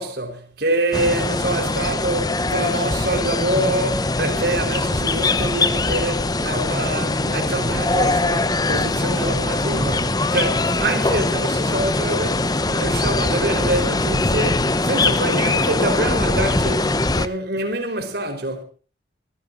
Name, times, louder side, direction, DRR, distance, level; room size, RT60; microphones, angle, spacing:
voice 1, 0.0-18.6, right 1 dB, 55° right, 4.3 m, -25 dB
sound 1, 0.9-17.3, left 2 dB, 20° left, 0.8 m, -21 dB
26.0 x 15.5 x 2.7 m
head